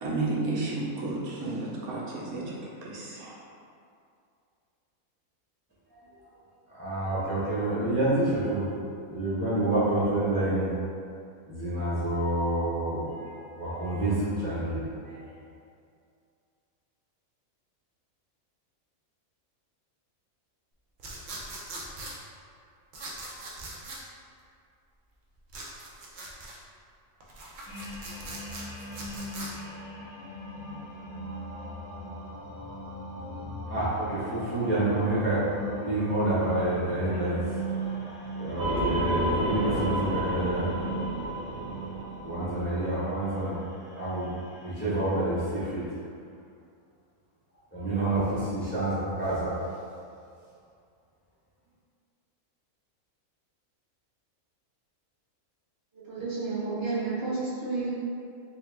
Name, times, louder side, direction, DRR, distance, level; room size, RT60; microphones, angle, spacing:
voice 1, 0.0-2.6 2.8-3.4, right 2 dB, 80° right, -5 dB, 1.2 m, -32 dB
voice 2, 6.7-10.7 11.4-15.2 33.6-40.7 42.2-43.6 43.8-44.3 44.6-45.9 47.7-49.6, right 1 dB, 10° left, -12 dB, 0.7 m, -28 dB
sound 1, 21.0-22.2 22.9-24.0 25.5-26.6 27.2-29.5, right 2 dB, 65° right, 0.4 m, -41 dB
sound 2, 27.7-45.1, right 2 dB, 80° left, 1.2 m, -40 dB
sound 3, 38.6-43.0, right 1 dB, 50° right, 1.6 m, -30 dB
voice 3, 55.9-57.9, right 3 dB, 15° right, -11 dB, 0.9 m, -31 dB
4.0 x 2.2 x 3.4 m, 2.4 s
omnidirectional pair, 1.5 m